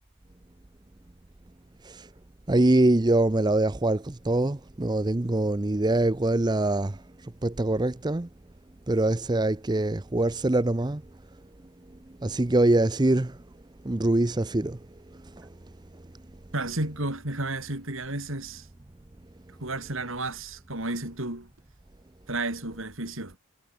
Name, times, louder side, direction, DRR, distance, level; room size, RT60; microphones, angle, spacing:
voice 1, 2.5-8.3 8.9-11.0 12.2-13.4 13.8-14.8 15.1-15.5, right 2 dB, 20° right, 0.6 m, -24 dB
voice 2, 16.5-18.7 19.6-21.5 22.3-23.4, right 2 dB, 65° right, 4.8 m, -32 dB
head